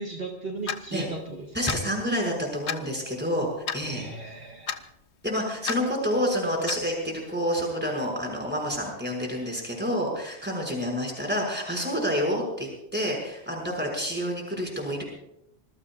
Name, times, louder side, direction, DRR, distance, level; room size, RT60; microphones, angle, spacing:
voice 1, 0.0-1.5 3.8-4.8, right 3 dB, 55° right, 0 dB, 1.9 m, -36 dB
Clock, 0.7-0.8 1.7-1.8 2.7-2.8 3.7-3.9 4.7-4.8 5.7-5.8 6.7-6.8, left 7 dB, 70° left, 1.2 m, -30 dB
voice 2, 1.5-4.1 5.2-15.0, equal, 10° right, 0 dB, 6.0 m, -28 dB
26.0 x 21.5 x 2.5 m, 0.80 s
omnidirectional pair, 1.2 m